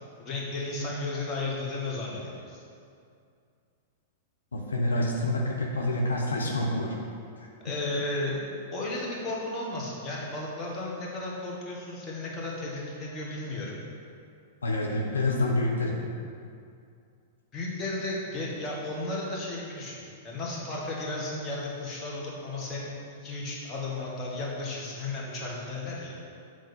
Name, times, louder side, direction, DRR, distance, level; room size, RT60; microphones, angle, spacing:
voice 1, 0.2-2.6 7.6-13.8 17.5-26.1, left 2 dB, 25° left, -5 dB, 1.8 m, -34 dB
voice 2, 4.5-7.0 7.4-7.5 14.6-16.0, left 1 dB, 75° left, -1 dB, 0.8 m, -27 dB
7.7 x 3.7 x 5.4 m, 2.4 s
figure-of-eight pair, 100°, 0 cm